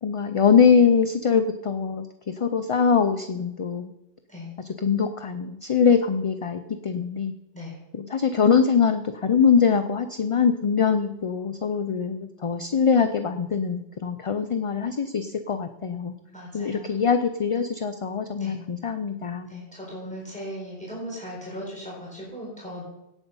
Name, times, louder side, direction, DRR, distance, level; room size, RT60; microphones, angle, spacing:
voice 1, 0.0-3.9 4.6-7.3 7.9-16.1 16.5-19.6, left 6 dB, 40° left, 9 dB, 0.5 m, -23 dB
voice 2, 16.3-17.0 18.4-18.6 19.5-22.8, equal, 5° left, -4 dB, 3.9 m, -38 dB
17.0 x 8.1 x 5.5 m, 0.90 s
omnidirectional pair, 1.0 m